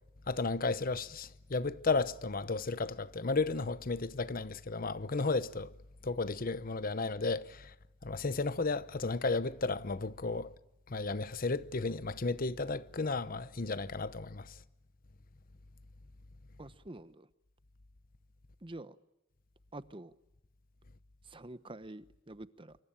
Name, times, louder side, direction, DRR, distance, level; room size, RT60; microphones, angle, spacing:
voice 1, 0.3-5.7 6.0-7.7 8.0-10.5 10.9-14.5, left 3 dB, 50° left, 0.9 m, -33 dB
voice 2, 16.6-17.3 18.6-19.0 19.7-20.1 21.2-22.8, right 2 dB, 30° right, 0.9 m, -47 dB
26.0 x 24.0 x 8.9 m
head